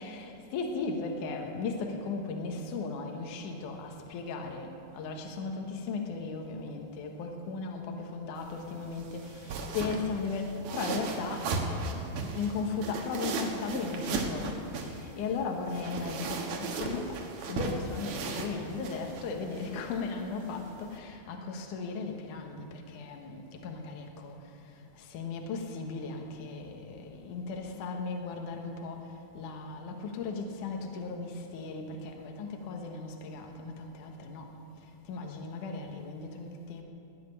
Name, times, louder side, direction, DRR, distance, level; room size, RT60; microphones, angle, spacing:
voice 1, 0.0-4.7 4.9-17.2 17.5-24.4 24.9-29.1 29.3-34.5 35.1-36.8, left 4 dB, 65° left, 2 dB, 2.6 m, -36 dB
sound 1, 8.4-21.0, right 3 dB, 75° right, 3.2 m, -37 dB
19.0 x 7.7 x 9.9 m, 2.7 s
omnidirectional pair, 4.3 m